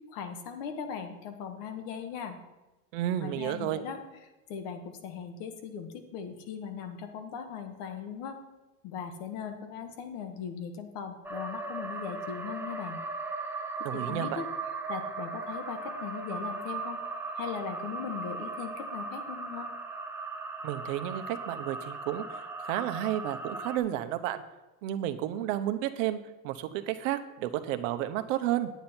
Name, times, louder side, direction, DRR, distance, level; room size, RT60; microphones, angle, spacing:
voice 1, 0.1-2.4 3.2-4.0 4.5-8.4 8.8-13.0 13.9-14.5 14.9-17.0 17.3-19.7, left 7 dB, 65° left, 6 dB, 1.6 m, -39 dB
voice 2, 2.9-3.8 13.8-14.4 20.6-24.4 24.8-26.2 26.4-28.7, right 12 dB, 80° right, 10 dB, 0.9 m, -32 dB
sound 1, 11.2-23.8, right 3 dB, 5° right, 0.6 m, -37 dB
9.6 x 9.2 x 4.4 m, 1.1 s
supercardioid pair, 140°, 38 cm